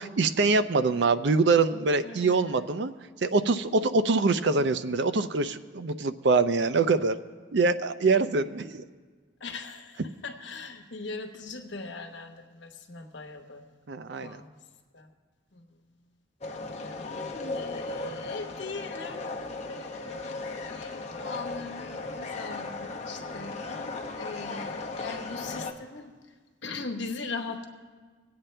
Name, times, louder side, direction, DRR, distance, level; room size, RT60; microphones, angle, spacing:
voice 1, 0.0-2.9 3.2-7.2 7.5-8.8 13.9-14.4, right 3 dB, 60° right, 12 dB, 0.5 m, -24 dB
voice 2, 2.0-2.6 9.4-13.7 14.2-14.5 14.9-15.1 15.5-15.6 16.8-17.0 17.5-23.6 24.1-26.1 26.6-27.7, left 3 dB, 70° left, 5 dB, 1.1 m, -40 dB
sound 1, 16.4-25.7, left 3 dB, 35° left, 0.8 m, -36 dB
22.0 x 8.7 x 3.3 m, 1.5 s
head